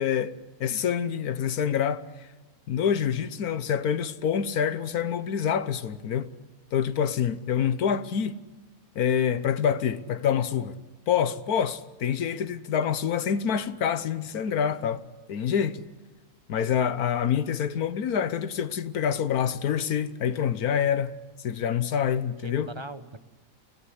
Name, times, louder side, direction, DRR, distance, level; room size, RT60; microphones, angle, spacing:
voice 1, 0.0-2.3 2.7-6.3 6.7-8.4 8.9-10.8 11.1-15.0 15.3-15.8 16.5-21.1 21.4-22.7, left 8 dB, 80° left, 1.4 m, -26 dB
voice 2, 22.0-23.2, right 3 dB, 20° right, 1.0 m, -41 dB
24.5 x 18.0 x 9.9 m
omnidirectional pair, 1.6 m